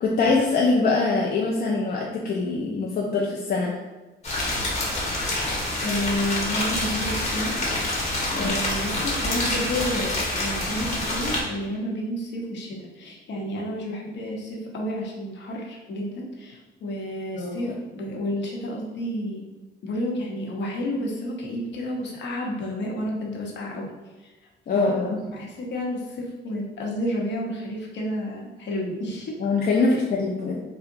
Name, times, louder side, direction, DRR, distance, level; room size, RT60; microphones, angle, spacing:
voice 1, 0.0-3.7 8.3-8.5 17.3-17.6 24.7-25.2 29.4-30.6, left 3 dB, 50° left, -2 dB, 0.5 m, -23 dB
sound 1, 4.2-11.4, left 1 dB, 35° left, 1.1 m, -27 dB
voice 2, 5.8-7.5 8.1-19.4 19.8-23.9 24.2-24.3 24.7-29.3, left 1 dB, 65° left, -2 dB, 0.8 m, -31 dB
3.7 x 2.1 x 2.5 m, 1.2 s
cardioid pair, 90°, 20 cm